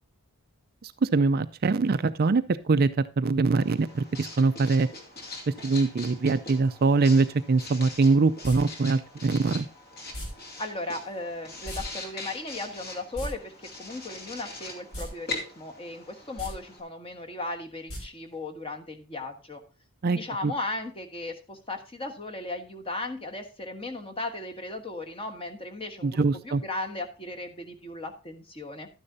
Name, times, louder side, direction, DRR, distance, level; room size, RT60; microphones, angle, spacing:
voice 1, 0.8-2.9 3.2-4.9 5.5-9.7 20.0-20.5 26.0-26.6, right 3 dB, 45° right, 12 dB, 0.4 m, -23 dB
Writing, 3.5-16.8, left 3 dB, 45° left, 2.5 m, -42 dB
sound 1, 8.4-8.6 10.1-10.3 11.6-11.8 12.1-12.2 13.0-13.3 14.9-15.1 15.4-15.5 16.3-16.5 17.9-18.0 18.3-18.4, equal, 65° left, 4.3 m, -35 dB
voice 2, 10.6-19.6 20.1-28.9, left 2 dB, 25° left, 4 dB, 1.3 m, -36 dB
12.0 x 9.8 x 2.7 m, 0.32 s
head